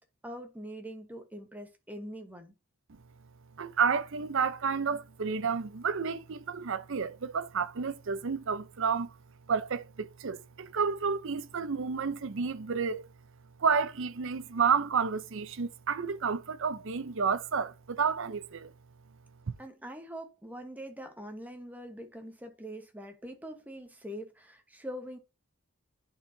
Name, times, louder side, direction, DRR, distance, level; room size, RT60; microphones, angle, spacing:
voice 1, 0.2-2.5 19.6-25.2, equal, 10° right, 1.1 m, -43 dB
voice 2, 3.6-9.2 9.5-13.0 13.6-18.7 19.5-19.6, right 6 dB, 60° right, 0.6 m, -30 dB
10.5 x 4.5 x 2.7 m
head